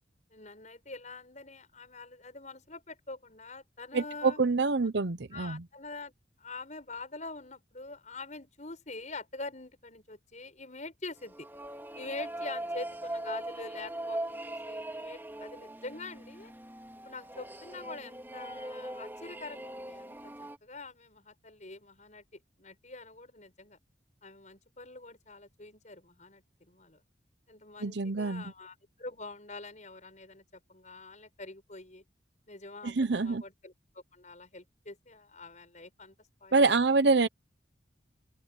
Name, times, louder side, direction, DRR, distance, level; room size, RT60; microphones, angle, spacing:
voice 1, 0.3-4.4 5.3-6.1 6.4-11.5 11.9-16.5 17.0-22.2 22.6-23.8 24.2-27.0 27.5-32.0 32.5-36.2 36.4-36.7, left 3 dB, 40° left, 7.7 m, -45 dB
voice 2, 3.9-5.6 27.8-28.4 32.8-33.4 36.5-37.3, right 3 dB, 65° right, 0.8 m, -26 dB
sound 1, 11.2-20.6, right 1 dB, 10° right, 3.3 m, -40 dB
open air
head